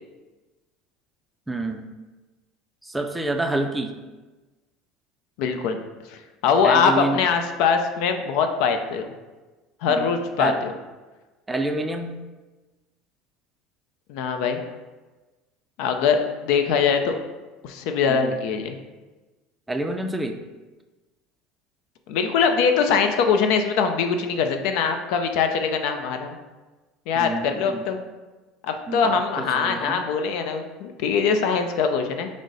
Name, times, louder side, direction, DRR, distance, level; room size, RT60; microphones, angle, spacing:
voice 1, 1.5-1.8 2.8-3.9 6.6-7.2 9.9-10.1 10.4-10.6 11.5-12.2 18.1-18.2 19.7-20.4 27.2-27.9 28.9-30.0, right 2 dB, 10° right, 4 dB, 0.4 m, -28 dB
voice 2, 5.4-5.8 6.1-9.1 9.8-10.7 14.1-14.6 15.8-17.1 17.6-18.8 22.1-26.3 27.1-28.0 28.6-32.3, left 6 dB, 70° left, 6 dB, 0.5 m, -22 dB
6.2 x 2.1 x 4.0 m, 1.2 s
supercardioid pair, 120°, 0 cm